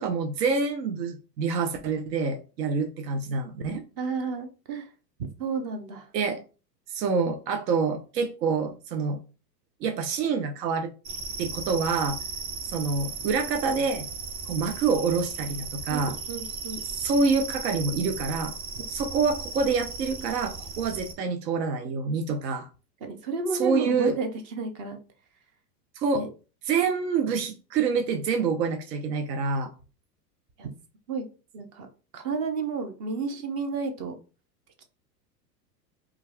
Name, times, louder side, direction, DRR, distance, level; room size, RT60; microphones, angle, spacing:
voice 1, 0.0-3.8 6.1-6.4 6.9-9.2 9.8-10.9 11.4-12.2 12.7-14.1 14.5-16.2 17.0-18.5 18.9-22.7 23.6-24.2 26.0-26.2 26.7-29.7, right 5 dB, 80° right, 6 dB, 0.6 m, -27 dB
voice 2, 4.0-4.9 5.4-6.1 15.9-16.8 18.8-18.9 23.0-25.0 26.1-26.3 30.6-30.7 31.1-31.3 31.5-31.9 32.1-34.1 34.8-34.9, right 4 dB, 30° right, 6 dB, 0.3 m, -31 dB
sound 1, 11.0-21.1, right 4 dB, 45° right, 0.9 m, -36 dB
2.3 x 2.3 x 3.1 m, 0.33 s
hypercardioid pair, 100°, 50 cm